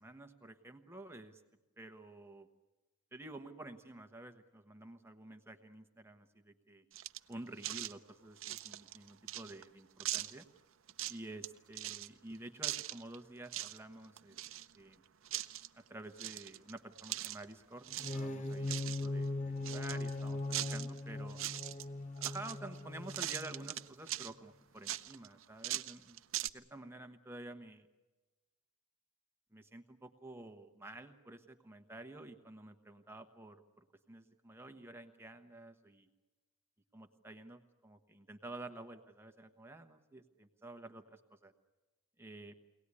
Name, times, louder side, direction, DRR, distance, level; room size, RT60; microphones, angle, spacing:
voice 1, 0.0-1.4 1.8-2.5 3.1-6.8 7.3-10.5 11.1-14.4 14.7-15.0 15.7-17.9 18.1-20.4 20.7-21.4 22.2-27.9 29.5-36.1 36.9-41.5 42.2-42.5, right 2 dB, 10° right, 6 dB, 1.1 m, -50 dB
sound 1, 6.9-7.3 7.6-7.9 8.4-9.6 10.0-10.4 10.9-11.5 11.7-12.1 12.6-13.2 13.5-13.8 14.0-14.9 15.3-15.7 16.2-17.5 17.8-18.2 18.5-19.1 19.6-21.0 21.3-21.9 22.2-22.8 23.1-24.3 24.9-26.5, right 14 dB, 65° right, 0.7 m, -41 dB
sound 2, 17.9-23.8, left 2 dB, 30° left, 0.9 m, -40 dB
23.5 x 18.5 x 9.8 m, 1.1 s
head